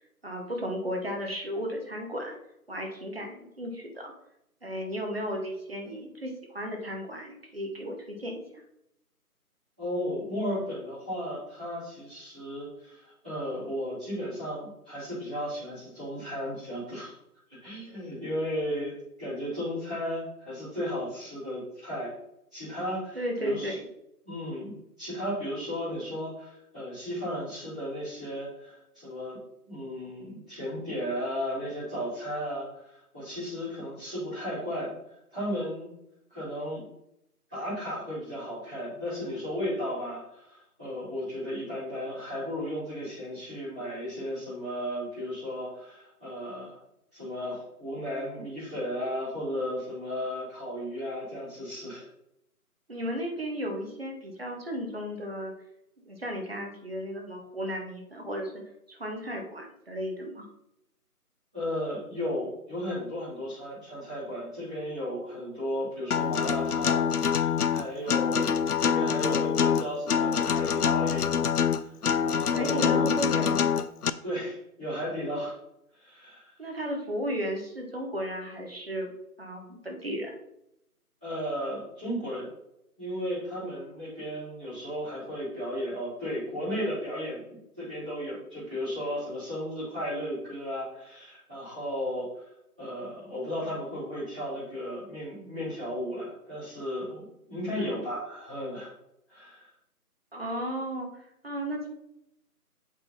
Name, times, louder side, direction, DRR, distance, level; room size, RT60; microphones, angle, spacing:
voice 1, 0.2-2.4 2.7-4.1 4.6-8.6 23.1-23.8 52.9-55.5 56.1-58.6 58.9-60.5 72.5-73.7 76.6-79.1 79.4-80.4 97.7-98.0 100.3-101.9, equal, 40° right, 2 dB, 1.2 m, -34 dB
voice 2, 9.8-17.1 17.6-22.1 22.5-23.8 24.2-34.9 35.3-35.9 36.3-36.8 37.5-46.8 47.1-52.1 61.5-68.5 68.8-71.4 71.8-71.9 72.2-73.1 74.2-75.5 75.9-76.5 81.2-82.5 83.0-87.4 87.8-92.5 92.8-98.9 99.3-99.7, equal, 5° right, -18 dB, 1.4 m, -34 dB
Acoustic guitar, 66.1-74.1, left 7 dB, 75° left, 0.5 m, -25 dB
7.9 x 3.7 x 4.1 m, 0.81 s
figure-of-eight pair, 170°, 47 cm